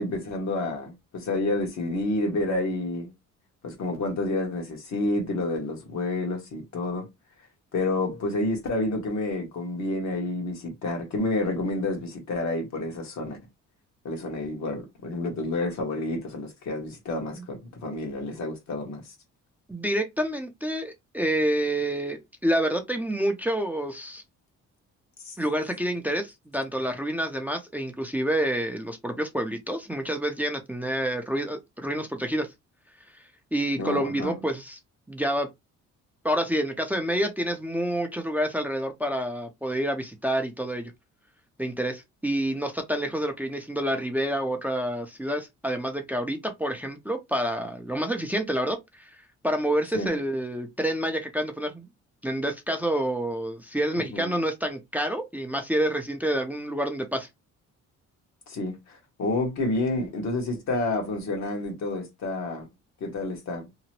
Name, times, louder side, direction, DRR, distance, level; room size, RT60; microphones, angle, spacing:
voice 1, 0.0-3.1 3.6-7.1 7.7-13.4 14.0-19.0 25.2-25.4 33.8-34.4 49.9-50.1 54.1-54.3 58.5-62.7 63.0-63.7, left 2 dB, 65° left, 1.2 m, -29 dB
voice 2, 19.7-24.2 25.4-32.5 33.5-34.8 35.1-35.5 36.2-40.9 41.6-49.2 49.4-51.9 52.2-57.3, right 1 dB, 5° right, 0.5 m, -28 dB
2.9 x 2.0 x 2.9 m
cardioid pair, 90°, 30 cm